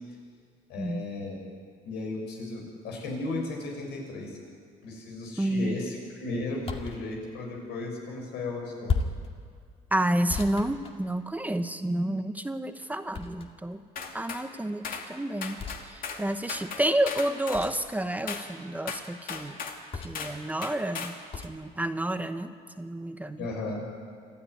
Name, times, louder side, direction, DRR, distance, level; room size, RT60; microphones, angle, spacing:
voice 1, 0.7-1.4 1.8-4.4 4.8-8.9 23.4-23.8, left 2 dB, 85° left, 0 dB, 6.6 m, -35 dB
voice 2, 5.4-5.8 9.9-13.8 14.1-15.6 15.8-19.6 20.0-21.2 21.4-22.5 22.8-23.4, right 1 dB, 10° right, 8 dB, 1.0 m, -30 dB
sound 1, 6.6-7.0 8.9-9.3 10.3-11.5 13.1-13.7 15.6-15.8 17.5-17.9 19.9-20.3 21.3-21.6, left 4 dB, 35° left, 2.3 m, -33 dB
sound 2, 14.0-14.4 14.8-15.1 15.4-16.2 16.5-17.7 18.3-18.5 18.9-19.8 20.1-20.4 20.6-21.2, left 5 dB, 55° left, 2.7 m, -36 dB
27.0 x 13.0 x 9.7 m, 2.1 s
cardioid pair, 110°, 17 cm